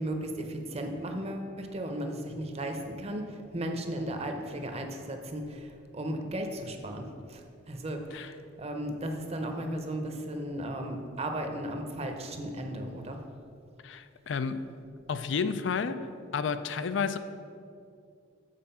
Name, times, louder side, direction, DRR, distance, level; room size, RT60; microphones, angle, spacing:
voice 1, 0.0-13.2, right 1 dB, 35° right, 4 dB, 0.7 m, -35 dB
voice 2, 13.8-14.7 15.1-16.0 16.3-17.2, left 6 dB, 70° left, 12 dB, 0.4 m, -31 dB
7.5 x 4.6 x 5.6 m, 2.4 s
head